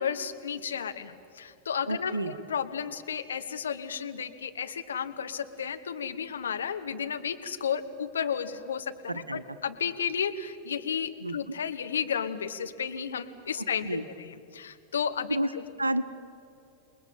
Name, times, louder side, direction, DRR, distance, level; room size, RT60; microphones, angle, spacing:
voice 1, 0.0-15.6, left 7 dB, 65° left, 8 dB, 1.4 m, -33 dB
voice 2, 1.9-2.3 9.1-9.4 11.2-11.4 13.6-14.0 15.3-15.5 15.8-16.0, right 1 dB, 85° right, 13 dB, 1.0 m, -30 dB
28.5 x 20.0 x 9.1 m, 2.7 s
figure-of-eight pair, 90°, 0 cm